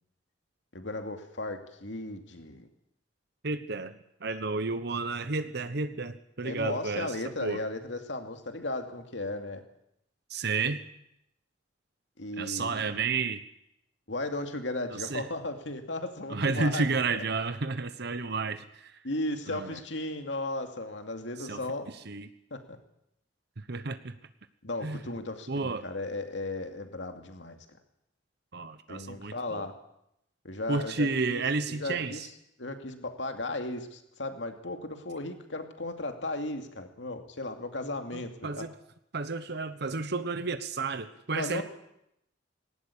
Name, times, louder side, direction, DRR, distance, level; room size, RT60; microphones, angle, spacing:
voice 1, 0.7-2.7 6.4-9.6 12.2-12.9 14.1-16.9 17.1-17.2 19.0-21.9 22.5-22.8 24.6-27.6 28.9-29.7 30.4-32.3 32.6-38.7 41.3-41.6, left 2 dB, 75° left, 6 dB, 2.5 m, -36 dB
voice 2, 3.4-7.1 7.4-7.6 10.3-10.8 12.4-13.4 14.9-15.3 16.3-18.9 19.5-19.8 21.4-21.6 22.1-22.3 23.7-24.1 24.8-25.0 25.5-25.8 28.5-29.6 30.7-32.3 38.1-38.7 39.1-41.6, right 4 dB, 65° right, 11 dB, 1.1 m, -31 dB
19.0 x 18.0 x 8.6 m, 0.79 s
head